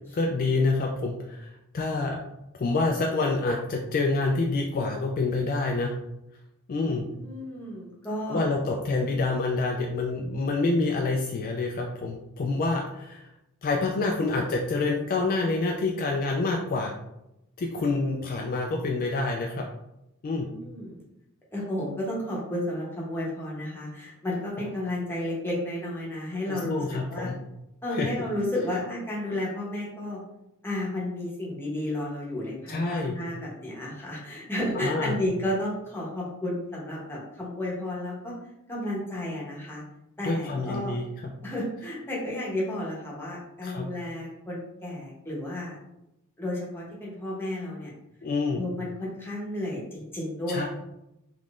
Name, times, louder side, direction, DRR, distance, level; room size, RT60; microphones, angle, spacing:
voice 1, 0.1-2.2 2.6-6.0 6.7-7.0 8.3-13.3 13.6-16.9 17.6-19.6 20.2-20.5 26.5-27.4 27.9-28.1 32.7-33.2 34.7-35.2 40.2-41.3 43.6-43.9 48.2-48.6 50.5-50.6, left 3 dB, 40° left, 0 dB, 0.3 m, -27 dB
voice 2, 6.8-8.5 20.3-21.0 21.5-27.3 27.8-30.2 30.6-38.3 38.7-39.8 40.2-40.9 41.4-45.8 46.4-47.9 48.5-50.7, left 1 dB, 10° left, -5 dB, 0.9 m, -32 dB
3.6 x 3.0 x 2.5 m, 0.87 s
head